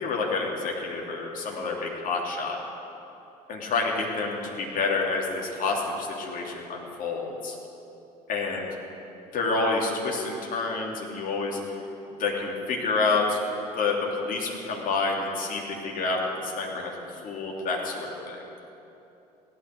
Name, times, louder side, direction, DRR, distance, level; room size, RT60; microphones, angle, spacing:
voice 1, 0.0-2.6 3.5-7.6 8.3-8.7 9.3-11.6 12.1-13.4 13.7-16.9 17.2-18.4, left 3 dB, 45° left, -1 dB, 3.0 m, -28 dB
17.0 x 12.5 x 6.6 m, 2.9 s
figure-of-eight pair, 60°, 21 cm